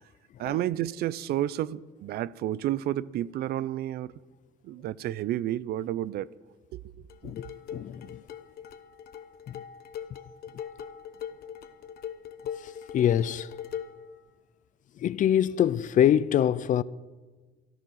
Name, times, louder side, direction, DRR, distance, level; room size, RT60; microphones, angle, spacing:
voice 1, 0.4-4.1 4.6-6.3 6.7-6.8, right 13 dB, 70° right, 0.5 m, -30 dB
sound 1, 7.1-14.1, left 8 dB, 65° left, 1.1 m, -41 dB
voice 2, 7.7-8.2 9.5-9.6 12.6-13.5 15.0-16.8, left 10 dB, 50° left, 0.5 m, -25 dB
14.0 x 12.5 x 6.4 m
cardioid pair, 110°, 17 cm